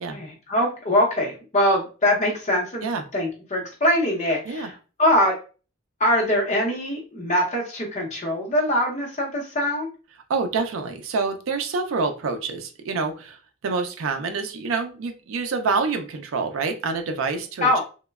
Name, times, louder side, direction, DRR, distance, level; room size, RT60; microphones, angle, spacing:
voice 1, 0.1-2.9 3.1-5.3 6.0-9.9 17.6-17.8, left 1 dB, 35° left, -1 dB, 0.7 m, -23 dB
voice 2, 10.3-13.4 13.6-17.8, right 4 dB, 75° right, 6 dB, 0.4 m, -27 dB
3.0 x 2.1 x 2.3 m, 0.35 s
head